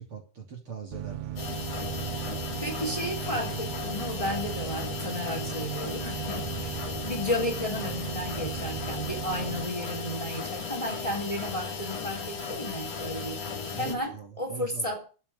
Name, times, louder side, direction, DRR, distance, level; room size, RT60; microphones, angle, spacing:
voice 1, 0.0-2.0 13.7-14.9, right 6 dB, 45° right, 3.7 m, -42 dB
sound 1, 0.9-9.7, right 11 dB, 85° right, 2.6 m, -37 dB
sound 2, 1.4-13.9, left 5 dB, 60° left, 4.1 m, -36 dB
voice 2, 2.6-13.4 13.8-15.2, left 1 dB, 10° left, 3.8 m, -33 dB
12.5 x 8.8 x 9.8 m
omnidirectional pair, 3.4 m